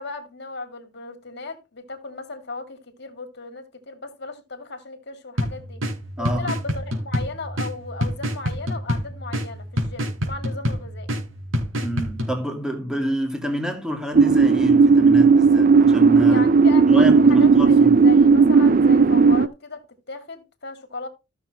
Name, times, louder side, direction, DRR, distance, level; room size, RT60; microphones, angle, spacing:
voice 1, 0.0-5.8 6.2-11.1 16.3-21.1, left 3 dB, 55° left, 2.4 m, -36 dB
sound 1, 5.4-12.3, equal, 80° right, 4.2 m, -28 dB
voice 2, 6.2-6.5 11.8-16.4 16.9-17.9, equal, 5° right, 2.3 m, -27 dB
sound 2, 14.1-19.5, right 4 dB, 45° right, 0.4 m, -14 dB
14.5 x 7.0 x 3.0 m
head